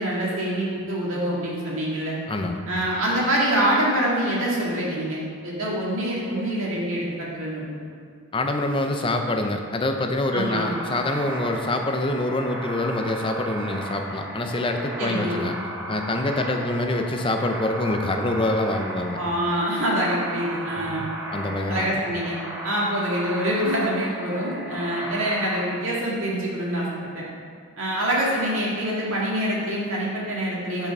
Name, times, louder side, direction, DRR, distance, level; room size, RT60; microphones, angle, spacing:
voice 1, 0.0-2.2 2.7-7.8 10.3-10.7 15.0-15.5 19.1-21.1 21.7-22.4 22.6-26.9 27.1-27.3 27.8-30.9, right 1 dB, 70° right, -5 dB, 2.1 m, -25 dB
voice 2, 2.3-2.6 8.3-15.6 15.9-19.2 20.8-22.0, left 2 dB, 25° left, 4 dB, 0.5 m, -25 dB
sound 1, 10.6-25.6, right 1 dB, 10° right, 0.9 m, -35 dB
6.6 x 5.6 x 6.0 m, 2.1 s
head